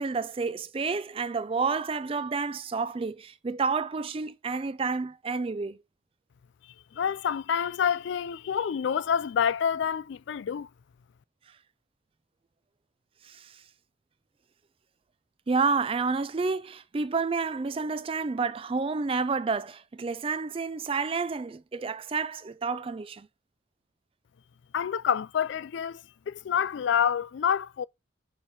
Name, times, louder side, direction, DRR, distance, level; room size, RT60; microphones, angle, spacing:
voice 1, 0.0-5.8 13.2-13.5 15.5-23.3, right 4 dB, 25° right, 0.3 m, -30 dB
voice 2, 6.9-10.7 24.7-27.9, left 8 dB, 60° left, 0.3 m, -28 dB
8.3 x 3.2 x 4.2 m
head